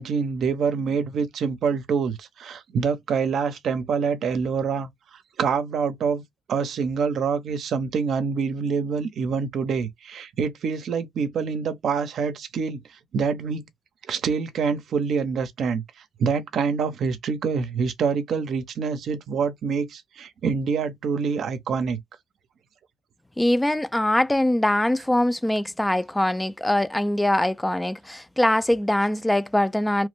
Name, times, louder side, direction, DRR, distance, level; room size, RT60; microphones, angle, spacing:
voice 1, 0.0-4.9 5.4-6.2 6.5-12.8 13.1-13.7 14.1-15.8 16.2-22.0, right 5 dB, 65° right, 0.6 m, -26 dB
voice 2, 23.4-30.1, left 1 dB, 10° left, 0.3 m, -22 dB
3.0 x 2.0 x 3.2 m
cardioid pair, 105°, 0 cm